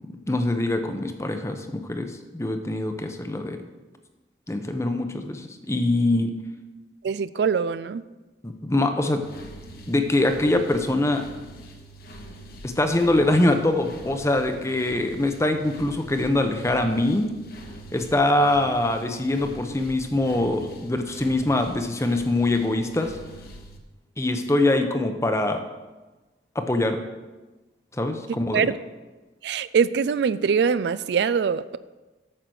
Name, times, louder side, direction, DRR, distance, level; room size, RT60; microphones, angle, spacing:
voice 1, 0.1-3.6 4.5-6.3 8.4-9.2 9.9-11.2 12.6-17.3 17.9-23.2 24.2-25.6 26.5-27.0 27.9-28.7, left 2 dB, 15° left, 7 dB, 0.7 m, -23 dB
voice 2, 7.0-8.0 28.3-28.8 29.4-31.8, right 6 dB, 70° right, 16 dB, 0.3 m, -23 dB
sound 1, 9.2-23.8, right 1 dB, 55° left, 1.2 m, -44 dB
8.8 x 6.7 x 6.2 m, 1.2 s
head